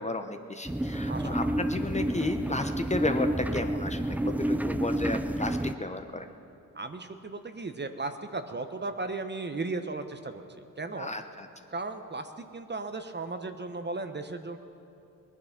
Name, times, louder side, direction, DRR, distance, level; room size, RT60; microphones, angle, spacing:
voice 1, 0.0-6.3 11.0-11.5, left 2 dB, 20° left, 7 dB, 0.9 m, -33 dB
sound 1, 0.6-5.7, right 1 dB, 5° right, 0.5 m, -29 dB
voice 2, 1.1-1.4 6.7-10.4 10.8-11.1 11.7-14.6, right 3 dB, 25° right, 8 dB, 1.0 m, -36 dB
19.5 x 10.0 x 5.9 m, 2.7 s
supercardioid pair, 55°, 38 cm